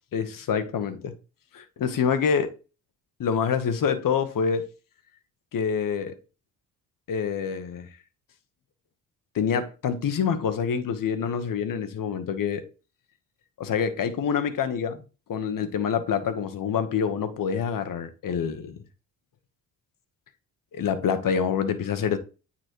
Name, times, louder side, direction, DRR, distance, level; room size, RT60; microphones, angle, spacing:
voice 1, 0.1-1.1 1.5-2.5 3.2-4.6 5.5-6.2 7.1-7.9 9.3-12.6 13.6-15.0 15.3-18.8 20.7-22.2, left 7 dB, 55° left, 1.2 m, -26 dB
9.0 x 4.2 x 3.1 m
supercardioid pair, 60°, 40 cm